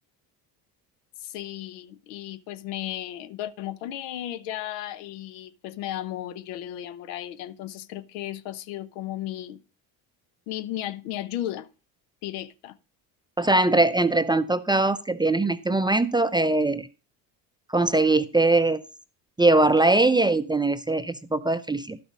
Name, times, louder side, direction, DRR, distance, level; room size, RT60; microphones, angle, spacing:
voice 1, 1.2-9.6 10.5-11.7 12.2-12.8, left 13 dB, 80° left, 0.9 m, -35 dB
voice 2, 13.4-16.9 17.7-18.8 19.4-22.0, right 2 dB, 10° right, 0.5 m, -21 dB
11.5 x 6.0 x 5.1 m
supercardioid pair, 85°, 48 cm